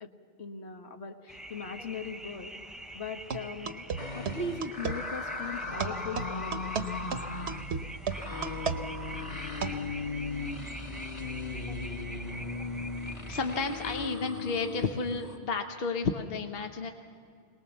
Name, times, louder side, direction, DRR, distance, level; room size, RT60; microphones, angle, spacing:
voice 1, 0.4-2.5 2.9-3.9 4.1-6.9, left 3 dB, 80° left, 5 dB, 1.6 m, -39 dB
sound 1, 1.3-14.1, right 1 dB, ahead, 0.4 m, -44 dB
sound 2, 3.3-5.0 5.8-9.9, right 6 dB, 80° right, 1.2 m, -34 dB
sound 3, 4.0-15.4, left 3 dB, 30° left, 1.5 m, -38 dB
voice 2, 13.3-16.9, left 4 dB, 60° left, 5 dB, 1.1 m, -32 dB
22.5 x 19.5 x 7.2 m, 2.3 s
omnidirectional pair, 1.1 m